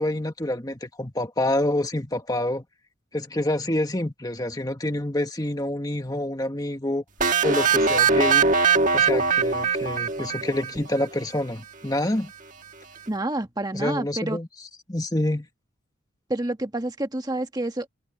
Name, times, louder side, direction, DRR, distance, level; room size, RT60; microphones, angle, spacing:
voice 1, 0.0-2.6 3.1-7.0 7.4-8.5 8.9-12.3 13.7-14.5 14.9-15.5, left 1 dB, 20° left, 1.7 m, -27 dB
sound 1, 7.2-11.0, right 5 dB, 40° right, 1.5 m, -21 dB
voice 2, 13.1-14.4 16.3-17.9, right 1 dB, 20° right, 1.5 m, -28 dB
head